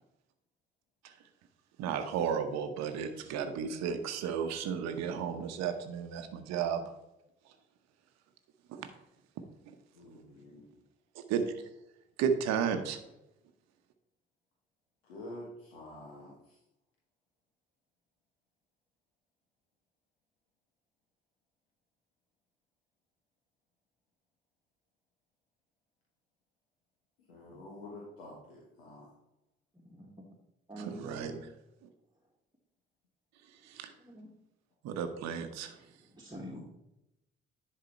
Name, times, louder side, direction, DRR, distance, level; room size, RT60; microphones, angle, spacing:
voice 1, 1.8-6.8 8.7-8.9 11.1-11.5 12.2-13.0 31.0-31.3 33.6-33.9 34.8-35.8, right 7 dB, 65° right, 8 dB, 0.9 m, -33 dB
voice 2, 9.9-10.8 15.0-16.6 27.2-29.1, left 1 dB, 85° left, -4 dB, 1.2 m, -48 dB
voice 3, 29.7-30.1 30.7-31.4 34.0-34.3 35.6-35.7 36.0-36.6, equal, 15° right, -3 dB, 1.6 m, -46 dB
10.5 x 3.7 x 4.4 m, 0.88 s
figure-of-eight pair, 40°, 29 cm